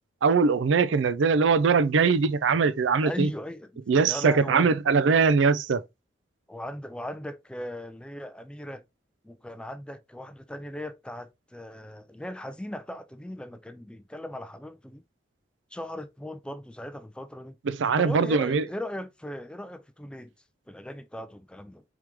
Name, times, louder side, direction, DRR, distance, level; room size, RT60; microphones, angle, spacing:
voice 1, 0.2-3.3 3.9-5.8 17.7-18.6, right 5 dB, 75° right, 0.4 m, -22 dB
voice 2, 3.0-3.7 4.0-4.8 6.5-8.9 9.2-15.0 15.7-17.6 18.0-20.3 20.7-21.8, left 1 dB, 5° left, 0.3 m, -38 dB
4.7 x 3.6 x 2.9 m
head